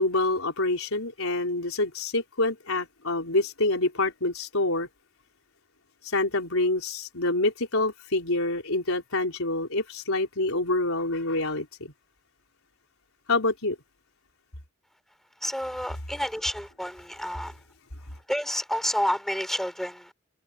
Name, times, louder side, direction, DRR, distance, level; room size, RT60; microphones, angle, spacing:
voice 1, 0.0-4.9 6.0-11.9 13.3-13.8, left 2 dB, 85° left, 4.1 m, -26 dB
voice 2, 15.4-17.5 18.3-20.0, equal, ahead, 4.7 m, -29 dB
head